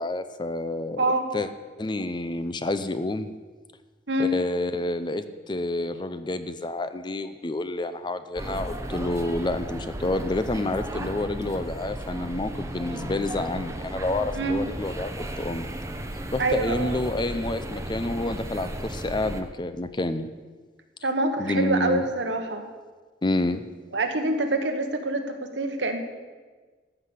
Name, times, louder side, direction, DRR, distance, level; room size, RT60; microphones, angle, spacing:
voice 1, 0.0-1.5 1.8-3.3 4.2-15.7 16.3-20.3 21.4-22.0 23.2-23.6, left 2 dB, 25° left, 11 dB, 0.5 m, -29 dB
voice 2, 1.0-1.3 4.1-4.4 14.3-14.6 16.4-16.9 21.0-22.6 23.9-26.0, right 2 dB, 75° right, 6 dB, 1.3 m, -26 dB
sound 1, 8.4-19.4, right 1 dB, 15° right, 0.8 m, -35 dB
13.5 x 5.8 x 8.2 m, 1.4 s
head